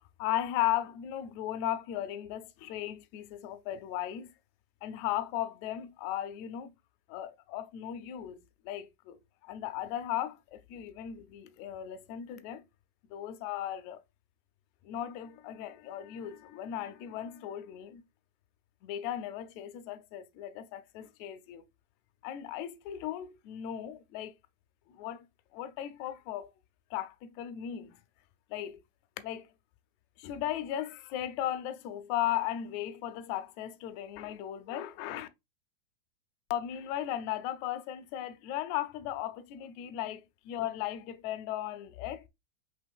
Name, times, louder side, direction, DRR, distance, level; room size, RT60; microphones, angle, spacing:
voice 1, 0.2-4.3 4.8-6.7 7.1-12.6 13.1-14.0 14.8-18.0 18.8-21.6 22.2-24.3 24.9-25.2 25.5-26.5 26.9-28.0 28.5-28.8 29.2-29.5 30.2-35.3 36.5-42.3, left 12 dB, 85° left, 1.6 m, -36 dB
5.1 x 2.9 x 3.3 m
omnidirectional pair, 3.7 m